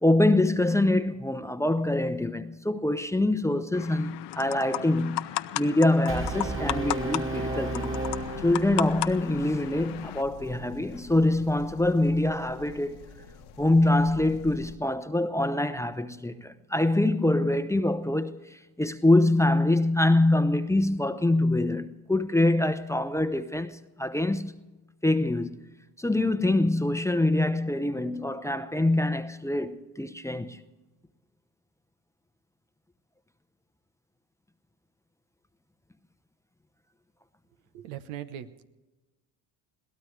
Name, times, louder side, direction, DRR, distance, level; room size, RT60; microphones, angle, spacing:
voice 1, 0.0-5.3 5.6-8.0 8.4-13.1 13.6-24.5 25.0-25.6 26.0-30.6, left 1 dB, 5° left, 0.8 m, -25 dB
sound 1, 3.7-10.2, left 15 dB, 65° left, 0.8 m, -35 dB
Brass instrument, 6.1-9.2, right 2 dB, 30° right, 2.0 m, -33 dB
sound 2, 7.9-14.8, left 7 dB, 80° left, 1.7 m, -47 dB
voice 2, 37.7-38.7, right 11 dB, 80° right, 1.1 m, -39 dB
22.5 x 17.0 x 3.3 m
supercardioid pair, 80°, 45 cm